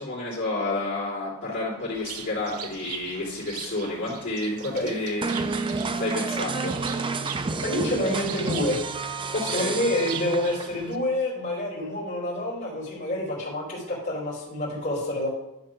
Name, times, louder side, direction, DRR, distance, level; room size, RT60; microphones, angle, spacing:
voice 1, 0.0-5.5 5.9-6.7 9.3-9.8, left 2 dB, 55° left, -7 dB, 3.4 m, -30 dB
Bird, 1.9-11.0, right 9 dB, 90° right, 0.7 m, -41 dB
sound 1, 5.2-10.9, right 4 dB, 25° right, 0.4 m, -30 dB
voice 2, 7.6-8.8 9.4-15.3, left 1 dB, 35° left, -7 dB, 3.5 m, -28 dB
11.0 x 3.8 x 5.9 m, 0.89 s
head